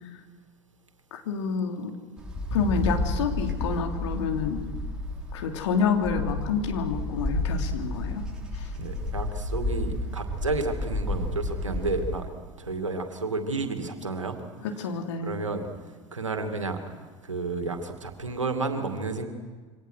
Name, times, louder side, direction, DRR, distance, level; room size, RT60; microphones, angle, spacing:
voice 1, 1.1-1.9 2.5-4.6 5.3-8.2 8.5-8.7 14.6-15.4, left 5 dB, 70° left, 3 dB, 3.2 m, -28 dB
Wind, 2.2-12.2, left 2 dB, 5° right, 6.7 m, -31 dB
voice 2, 8.7-12.3 12.6-14.4 15.2-15.7 16.1-16.8 17.2-19.3, right 3 dB, 90° right, 6 dB, 2.4 m, -31 dB
27.5 x 25.0 x 6.4 m, 1.5 s
figure-of-eight pair, 75°, 16 cm